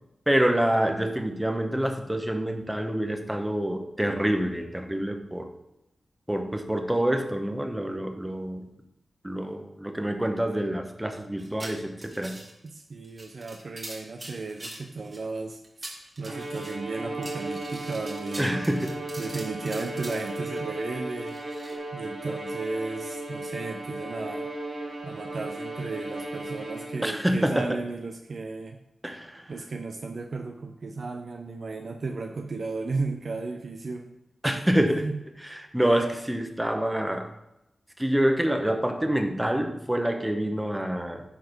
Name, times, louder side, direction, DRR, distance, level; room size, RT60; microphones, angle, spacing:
voice 1, 0.3-5.5 6.3-8.7 9.2-12.4 18.4-19.0 27.0-27.8 29.0-29.5 34.4-35.1 35.4-37.3 38.0-41.2, right 1 dB, 10° right, 5 dB, 1.0 m, -27 dB
sound 1, 11.4-12.7 13.0-15.2 15.6-16.8 17.2-20.6 21.3-21.8, right 1 dB, 40° right, 1.9 m, -43 dB
voice 2, 12.6-15.9 16.2-18.6 19.2-21.3 21.9-24.5 25.0-28.8 29.5-34.1 34.8-35.2, right 3 dB, 65° right, 4 dB, 0.6 m, -34 dB
Bowed string instrument, 16.2-27.2, right 1 dB, 90° right, 2.5 m, -36 dB
10.5 x 4.0 x 4.5 m, 0.90 s
cardioid pair, 65°, 0 cm